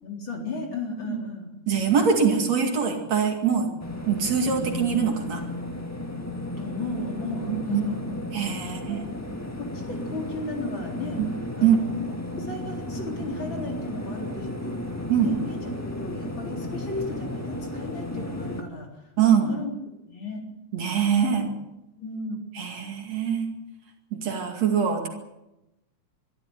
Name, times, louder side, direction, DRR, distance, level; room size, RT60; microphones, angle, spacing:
voice 1, 0.0-1.5 6.6-8.1 8.9-9.1 9.6-11.2 11.6-11.9 12.3-14.9 15.2-19.7 20.0-20.4 21.3-21.5 22.0-22.4, left 2 dB, 35° left, 1 dB, 4.3 m, -35 dB
voice 2, 1.7-3.7 4.1-5.4 7.5-7.8 8.3-9.1 11.6-11.8 15.1-15.3 19.2-19.5 20.7-21.5 22.6-23.5 24.1-25.1, right 7 dB, 60° right, 3 dB, 3.4 m, -23 dB
sound 1, 3.8-18.6, left 1 dB, 15° left, 0.5 m, -34 dB
23.5 x 13.0 x 9.7 m, 0.96 s
omnidirectional pair, 3.7 m